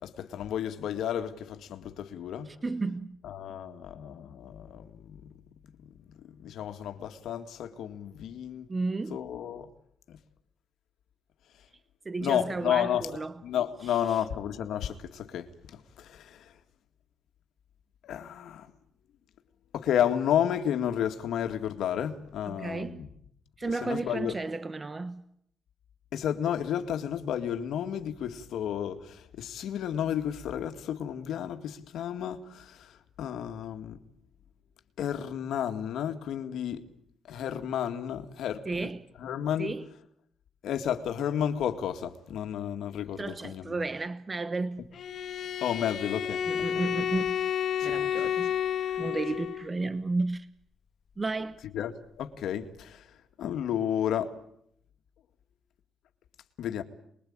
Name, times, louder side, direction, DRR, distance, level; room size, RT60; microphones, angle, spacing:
voice 1, 0.0-2.5 3.2-5.3 6.2-8.7 9.1-9.7 10.1-10.2 12.2-16.6 18.0-18.7 19.7-23.1 23.8-24.3 26.1-34.0 35.0-36.9 37.2-38.9 39.2-39.7 40.6-43.8 45.6-46.7 47.8-48.0 51.7-54.3 56.6-56.8, left 9 dB, 90° left, 2.0 m, -32 dB
voice 2, 2.5-3.2 8.7-9.2 12.0-13.4 22.5-23.0 23.6-25.2 38.7-39.1 39.6-39.9 43.2-44.9 46.5-47.5 47.8-48.5 49.0-50.5 51.2-51.6, right 3 dB, 25° right, 1.0 m, -33 dB
Bowed string instrument, 44.9-49.7, left 9 dB, 60° left, 1.5 m, -31 dB
29.0 x 21.5 x 8.8 m
cardioid pair, 135°, 0 cm